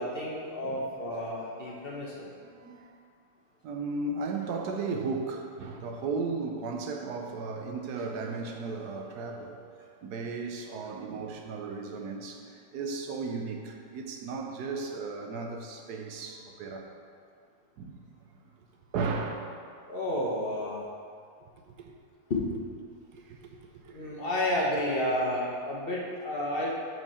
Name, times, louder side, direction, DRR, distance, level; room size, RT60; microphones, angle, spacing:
voice 1, 0.0-2.2 19.9-20.9 22.3-22.5 23.9-26.7, left 1 dB, 40° left, -4 dB, 1.0 m, -31 dB
voice 2, 1.7-2.1 2.4-2.9 3.6-9.6 10.0-16.9 17.8-18.0 18.9-19.5 21.7-21.9 23.1-24.1, right 4 dB, 80° right, 3 dB, 1.3 m, -35 dB
7.7 x 4.6 x 4.3 m, 2.2 s
omnidirectional pair, 1.7 m